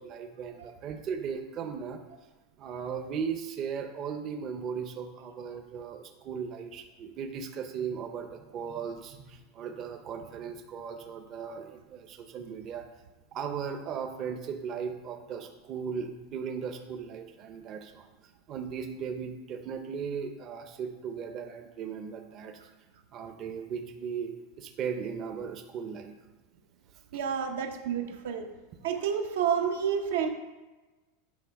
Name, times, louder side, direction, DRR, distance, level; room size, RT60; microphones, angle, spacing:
voice 1, 0.0-2.0 2.6-12.9 13.3-18.1 18.5-22.6 23.1-26.2, right 6 dB, 35° right, 5 dB, 0.5 m, -37 dB
voice 2, 27.1-28.5 28.8-30.3, right 7 dB, 85° right, 5 dB, 0.7 m, -29 dB
8.4 x 3.2 x 4.6 m, 1.2 s
supercardioid pair, 150°, 0 cm